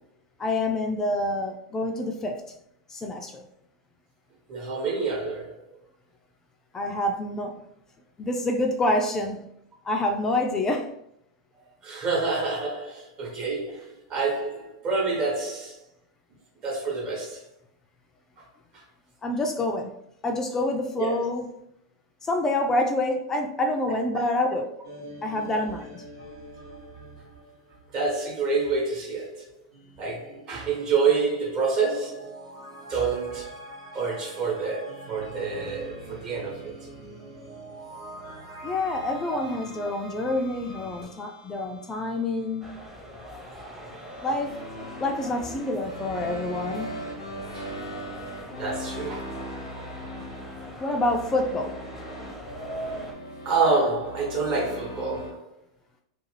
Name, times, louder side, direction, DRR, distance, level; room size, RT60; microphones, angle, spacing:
voice 1, 0.4-2.4 2.9-3.4 6.7-7.6 8.2-9.5 9.8-10.9 19.2-19.9 20.2-21.5 22.2-24.7 25.2-26.0 38.6-42.7 44.2-44.5 45.0-46.9 50.8-51.7, left 2 dB, 20° left, 0.3 m, -27 dB
voice 2, 4.5-5.6 11.8-15.7 16.6-17.4 21.0-21.2 27.9-29.5 30.0-32.3 32.9-33.5 33.9-36.7 39.3-39.4 47.5-47.7 48.5-49.3 53.4-55.5, right 4 dB, 40° right, 1.0 m, -27 dB
sound 1, 24.8-28.3 28.6-28.7 29.7-41.1, right 1 dB, 70° right, 1.0 m, -44 dB
sound 2, 38.8-55.3, equal, 85° left, 0.6 m, -40 dB
sound 3, 42.6-53.1, equal, 10° right, 0.7 m, -42 dB
2.4 x 2.3 x 3.1 m
hypercardioid pair, 95°, 2 cm